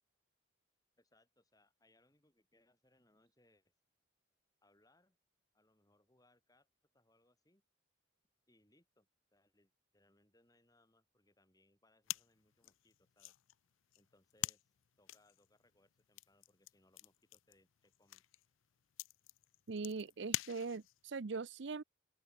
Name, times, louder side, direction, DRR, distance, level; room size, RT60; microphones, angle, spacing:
voice 1, 1.0-3.7 4.6-5.2 5.5-6.7 6.9-7.6 8.5-13.3 14.0-18.2, left 1 dB, 20° left, 7.4 m, -73 dB
sound 1, 12.0-21.1, left 14 dB, 75° left, 0.5 m, -47 dB
voice 2, 19.7-21.8, right 4 dB, 60° right, 0.6 m, -41 dB
open air
head